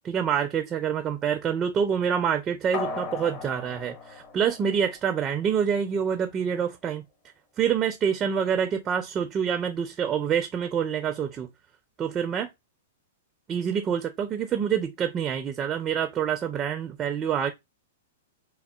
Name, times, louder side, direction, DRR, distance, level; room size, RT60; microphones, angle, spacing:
voice 1, 0.1-7.0 7.6-11.5 12.0-12.5 13.5-17.5, right 7 dB, 25° right, 0.4 m, -26 dB
sound 1, 2.7-5.3 5.7-5.8, left 4 dB, 40° left, 0.8 m, -37 dB
3.6 x 2.0 x 2.2 m
hypercardioid pair, 125°, 0 cm